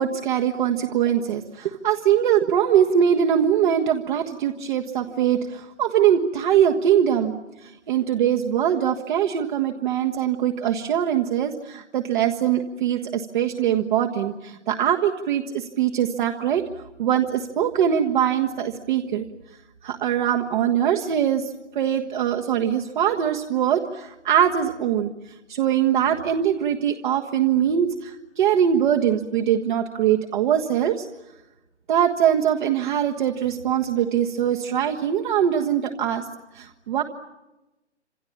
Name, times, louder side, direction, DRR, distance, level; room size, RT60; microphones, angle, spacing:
voice 1, 0.0-7.3 7.6-16.6 17.0-19.3 19.8-31.0 31.9-36.2 36.5-37.0, right 9 dB, 45° right, 2 dB, 1.6 m, -22 dB
28.5 x 27.0 x 7.3 m, 1.0 s
figure-of-eight pair, 130°, 35 cm